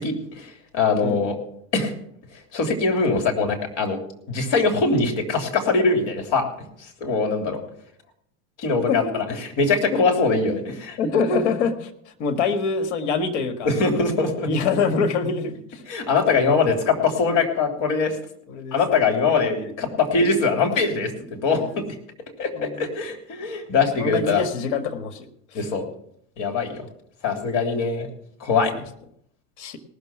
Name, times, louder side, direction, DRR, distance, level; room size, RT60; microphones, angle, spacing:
voice 1, 0.0-1.4 1.7-1.9 2.5-4.0 4.3-6.4 6.8-7.6 8.6-11.0 13.6-14.5 15.9-18.2 18.7-21.8 22.4-24.4 25.5-25.8 26.4-26.8 27.2-28.1 28.4-28.7, left 4 dB, 60° left, 3 dB, 3.2 m, -22 dB
voice 2, 11.0-13.7 14.5-15.8 18.5-18.8 19.4-19.5 21.5-21.8 22.6-22.9 24.0-25.3 29.6-29.8, left 4 dB, 80° left, 7 dB, 1.7 m, -25 dB
18.5 x 6.7 x 6.0 m, 0.70 s
supercardioid pair, 95°, 35 cm